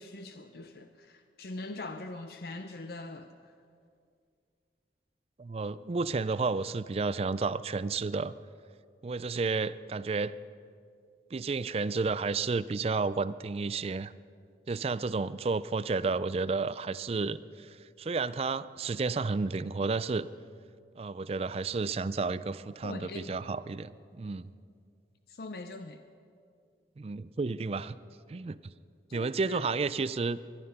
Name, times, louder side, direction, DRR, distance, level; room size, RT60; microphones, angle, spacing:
voice 1, 0.0-3.3 22.8-23.5 25.3-26.0 29.1-29.7, left 2 dB, 60° left, 8 dB, 0.6 m, -42 dB
voice 2, 5.4-8.3 9.0-10.4 11.3-14.1 14.7-20.3 21.0-24.4 27.0-28.0 28.3-28.6 29.1-30.4, right 4 dB, 35° right, 16 dB, 0.3 m, -31 dB
21.5 x 11.5 x 5.5 m, 2.3 s
head